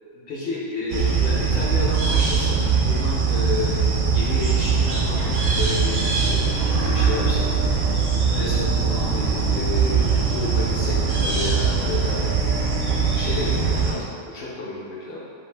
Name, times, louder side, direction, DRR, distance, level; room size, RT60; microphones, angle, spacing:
voice 1, 0.1-7.4 8.2-12.2 12.9-15.2, left 2 dB, 60° left, -5 dB, 0.7 m, -31 dB
sound 1, 0.9-13.9, right 5 dB, 65° right, 0.7 m, -21 dB
sound 2, 5.6-13.8, equal, 20° right, 0.3 m, -35 dB
2.6 x 2.4 x 3.2 m, 2.3 s
omnidirectional pair, 1.3 m